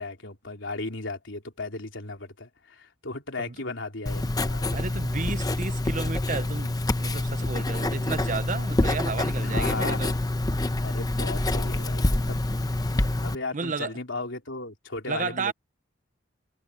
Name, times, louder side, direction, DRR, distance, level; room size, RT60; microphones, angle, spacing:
voice 1, 0.0-4.8 9.4-10.2 10.8-12.4 13.2-15.5, left 3 dB, 80° left, 3.5 m, -35 dB
Writing, 4.1-13.4, left 1 dB, 20° left, 0.8 m, -26 dB
voice 2, 4.7-10.1 13.5-13.9 15.1-15.5, right 4 dB, 45° right, 0.8 m, -33 dB
head